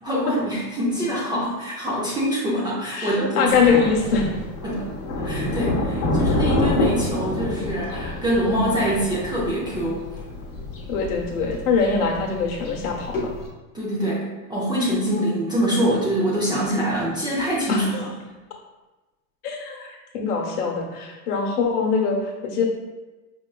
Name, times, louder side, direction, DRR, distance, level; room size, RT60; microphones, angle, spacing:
voice 1, 0.0-3.8 4.6-4.9 5.2-10.0 13.7-17.9, equal, 10° right, -7 dB, 0.4 m, -24 dB
voice 2, 2.9-4.3 10.9-13.3 17.7-18.0 19.4-22.7, left 5 dB, 80° left, 1 dB, 0.9 m, -23 dB
Thunder, 3.5-13.5, left 1 dB, 35° left, 0.9 m, -27 dB
4.9 x 2.2 x 2.3 m, 1.1 s
supercardioid pair, 125°, 45 cm